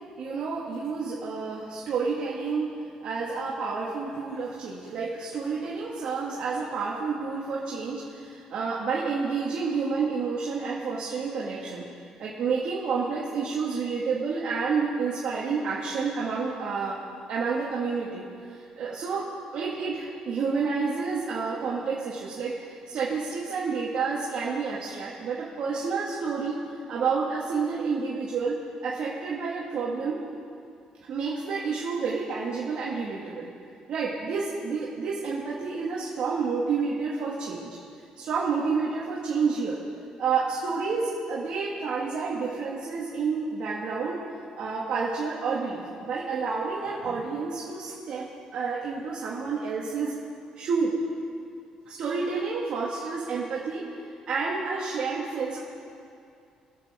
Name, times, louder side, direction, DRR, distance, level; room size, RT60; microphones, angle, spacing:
voice 1, 0.2-2.7 3.0-11.8 12.2-17.0 17.3-19.3 19.5-26.6 26.9-30.2 31.1-33.4 33.9-37.8 38.2-39.8 40.2-44.2 44.6-50.1 50.6-50.9 51.9-55.6, right 5 dB, 55° right, -6 dB, 1.9 m, -29 dB
24.0 x 8.6 x 3.6 m, 2.4 s
cardioid pair, 160°, 2 cm